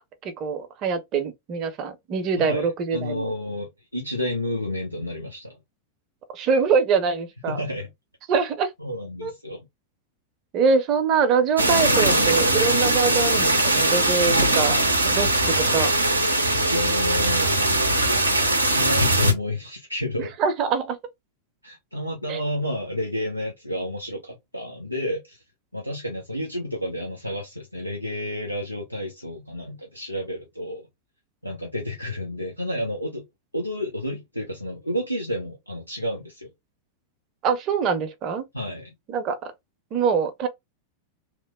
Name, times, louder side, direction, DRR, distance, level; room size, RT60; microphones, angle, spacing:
voice 1, 0.2-3.3 6.3-7.6 8.3-8.7 9.2-9.3 10.5-14.8 15.0-15.9 17.4-17.5 20.4-21.0 22.3-22.4 37.4-38.5 39.1-39.5 39.9-40.5, right 5 dB, 35° right, 0.7 m, -24 dB
voice 2, 2.4-5.6 7.5-7.9 8.8-9.6 16.7-17.5 18.7-20.3 21.6-25.4 25.7-30.9 31.4-33.2 33.5-36.5 38.5-38.9, left 1 dB, 90° left, 0.6 m, -30 dB
sound 1, 11.6-19.3, right 1 dB, 85° right, 0.5 m, -20 dB
3.0 x 2.0 x 3.5 m
figure-of-eight pair, 90°, 0 cm